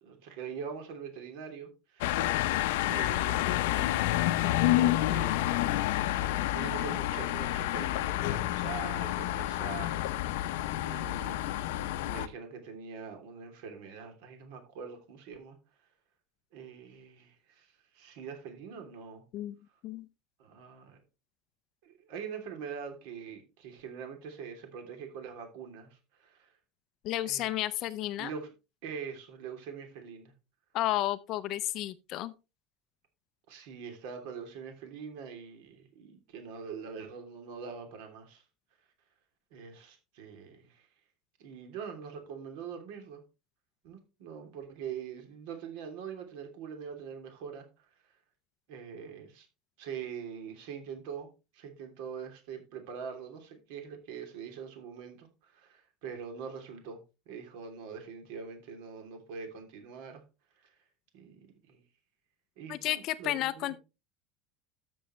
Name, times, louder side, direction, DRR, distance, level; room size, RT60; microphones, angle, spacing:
voice 1, 0.0-2.0 2.9-5.6 6.1-15.6 16.5-19.2 20.4-21.0 21.8-26.5 27.2-27.6 28.2-28.5 28.8-30.3 33.5-38.4 39.5-40.9 41.4-43.2 43.8-47.7 48.7-49.5 49.8-57.0 57.3-60.2 60.6-60.7 61.1-61.8 62.6-63.8, right 6 dB, 60° right, 3.0 m, -43 dB
sound 1, 2.0-12.3, left 15 dB, 80° left, 0.7 m, -29 dB
voice 2, 27.0-28.3 30.7-32.3 62.7-63.8, left 15 dB, 35° left, 0.5 m, -32 dB
12.5 x 7.0 x 3.2 m
cardioid pair, 180°, 0 cm